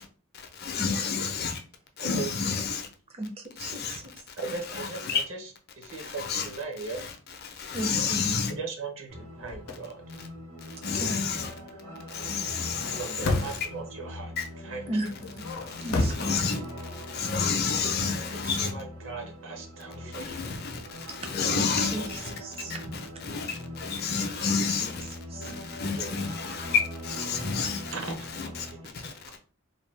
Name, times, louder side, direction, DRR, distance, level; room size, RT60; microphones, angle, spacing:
voice 1, 0.6-1.5 2.0-2.8 3.6-4.0 4.7-5.2 6.2-6.5 7.7-8.5 10.8-11.5 12.2-13.4 14.4-14.5 16.2-16.6 17.1-18.7 20.1-20.6 21.2-22.1 23.3-23.5 23.8-24.9 25.8-26.8 27.1-27.8 28.3-28.5, left 5 dB, 50° left, 0.5 m, -29 dB
voice 2, 2.0-2.6 4.4-5.5 5.8-7.0 8.6-10.0 13.0-14.8 18.1-20.5 26.0-26.2 27.9-29.4, right 4 dB, 65° right, 0.8 m, -39 dB
voice 3, 3.2-4.1 7.7-8.3 10.9-11.2 14.8-15.4 15.8-16.3 21.2-23.0 24.2-24.3 24.7-25.5, right 1 dB, 30° right, 0.5 m, -36 dB
sound 1, 9.1-28.8, equal, 85° right, 1.4 m, -42 dB
sound 2, 9.4-9.8 12.7-13.8 15.2-16.3, left 2 dB, 90° left, 0.6 m, -30 dB
2.7 x 2.2 x 3.2 m
head